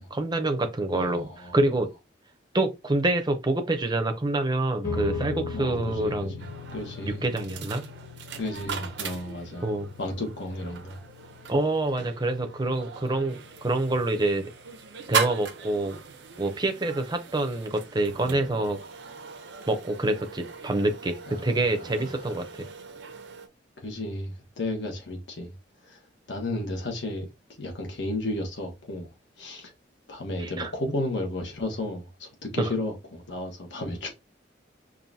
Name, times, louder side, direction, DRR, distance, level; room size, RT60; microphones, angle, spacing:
voice 1, 0.1-1.9 2.5-6.4 7.1-7.9 9.6-9.9 11.5-14.5 15.1-16.0 16.4-18.8 19.7-22.7 30.4-30.7 32.6-32.7, right 2 dB, 20° right, 0.6 m, -26 dB
voice 2, 0.9-1.6 5.5-7.2 8.4-9.7 10.0-11.0 18.1-18.5 21.3-21.4 23.8-25.5 25.9-26.0 26.3-27.3 27.6-29.1 29.4-29.7 30.1-34.1, left 1 dB, 70° left, 1.3 m, -33 dB
sound 1, 4.8-17.4, left 4 dB, 40° left, 1.7 m, -40 dB
sound 2, 6.4-23.5, right 6 dB, 65° right, 0.6 m, -38 dB
5.4 x 2.6 x 2.7 m
head